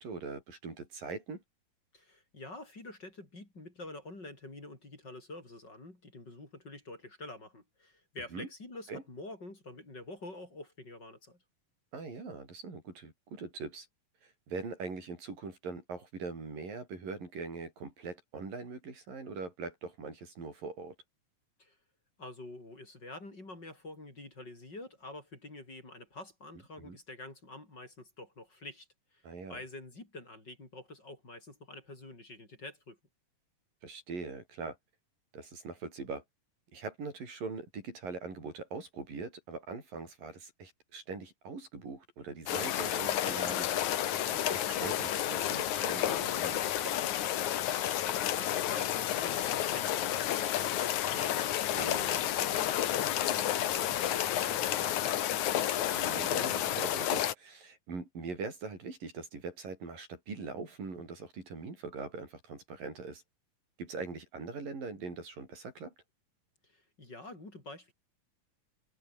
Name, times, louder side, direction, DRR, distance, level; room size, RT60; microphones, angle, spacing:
voice 1, 0.0-1.4 8.3-8.5 8.9-9.0 11.9-13.9 14.2-21.0 26.8-27.0 29.2-29.6 33.8-34.8 35.3-36.2 36.7-43.7 44.3-46.9 51.7-52.1 55.9-63.2 63.8-65.9, right 4 dB, 80° right, 8.7 m, -42 dB
voice 2, 1.9-11.4 21.6-21.8 22.2-29.2 29.5-33.0 48.1-55.5 66.6-67.9, left 2 dB, 30° left, 6.5 m, -48 dB
sound 1, 42.5-57.3, left 11 dB, 65° left, 2.6 m, -31 dB
omnidirectional pair, 3.9 m